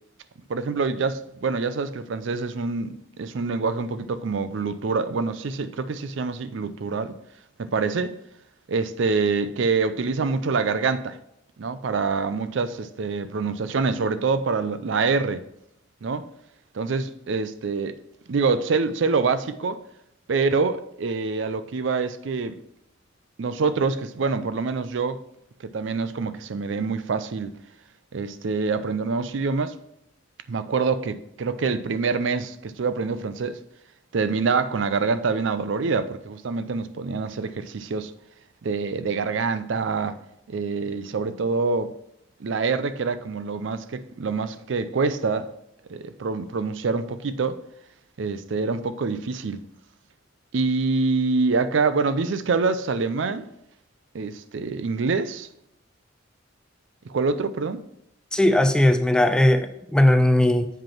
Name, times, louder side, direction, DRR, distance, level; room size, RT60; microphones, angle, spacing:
voice 1, 0.5-7.1 7.6-8.2 8.7-11.2 11.6-15.4 16.0-16.3 16.7-18.0 18.3-19.8 20.3-22.6 23.4-25.2 25.6-27.5 28.1-29.8 30.5-33.6 34.1-38.1 38.6-40.2 40.5-41.9 42.4-45.5 45.9-47.6 48.2-49.6 50.5-53.5 54.1-55.5 57.1-57.8, right 4 dB, 65° right, 0.5 m, -25 dB
voice 2, 58.3-60.7, left 1 dB, 5° left, 0.4 m, -18 dB
7.5 x 5.2 x 4.4 m
head